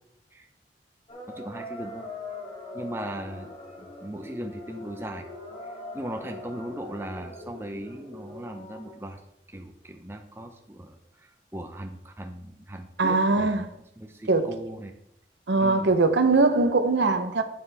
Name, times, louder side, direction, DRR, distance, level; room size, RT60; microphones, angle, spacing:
sound 1, 1.1-9.0, left 2 dB, 30° left, 1.6 m, -41 dB
voice 1, 1.3-2.1 2.7-3.5 3.8-5.3 5.6-9.2 9.5-13.7 14.0-14.9 15.6-16.0, right 1 dB, 15° right, 0.6 m, -38 dB
voice 2, 13.0-13.7 14.3-14.5 15.5-17.4, right 3 dB, 70° right, 0.8 m, -21 dB
8.7 x 7.0 x 3.4 m
head